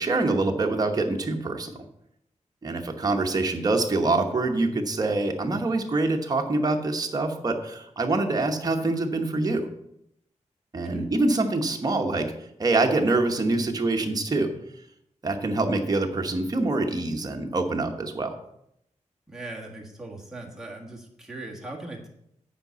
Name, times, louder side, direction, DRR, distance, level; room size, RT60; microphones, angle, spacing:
voice 1, 0.0-1.7 2.6-9.7 10.7-12.3 12.6-14.5 15.2-18.4, right 2 dB, 30° right, 3 dB, 1.1 m, -25 dB
voice 2, 19.3-22.1, right 2 dB, 5° right, -3 dB, 1.6 m, -40 dB
9.0 x 5.0 x 6.7 m, 0.77 s
wide cardioid pair, 170°, 13 cm